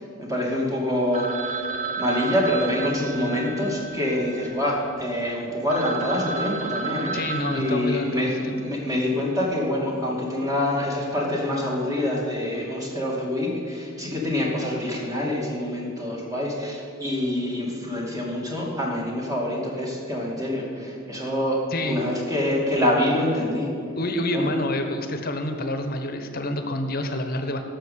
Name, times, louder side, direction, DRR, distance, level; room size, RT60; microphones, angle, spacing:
voice 1, 0.0-1.7 2.0-7.2 7.5-21.6 21.9-23.7 24.3-24.5, left 1 dB, 15° right, -2 dB, 2.3 m, -26 dB
Telephone, 1.1-4.9 5.4-5.5 5.7-8.6, right 4 dB, 35° right, 0.8 m, -33 dB
voice 2, 7.1-8.6 21.7-22.0 24.0-27.6, left 1 dB, 45° left, 7 dB, 1.1 m, -27 dB
12.5 x 6.5 x 8.3 m, 2.4 s
head